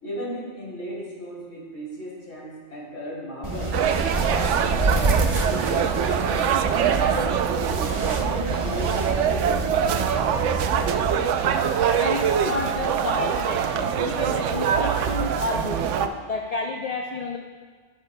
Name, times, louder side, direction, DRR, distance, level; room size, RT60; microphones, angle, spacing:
voice 1, 0.0-3.8 4.2-11.2, equal, 75° left, -6 dB, 3.7 m, -36 dB
sound 1, 3.4-11.2, right 2 dB, 30° right, 0.7 m, -28 dB
sound 2, 3.7-16.1, right 8 dB, 75° right, 0.9 m, -24 dB
voice 2, 12.0-17.4, left 3 dB, 45° left, 2 dB, 0.5 m, -30 dB
15.5 x 8.8 x 2.2 m, 1.5 s
omnidirectional pair, 1.3 m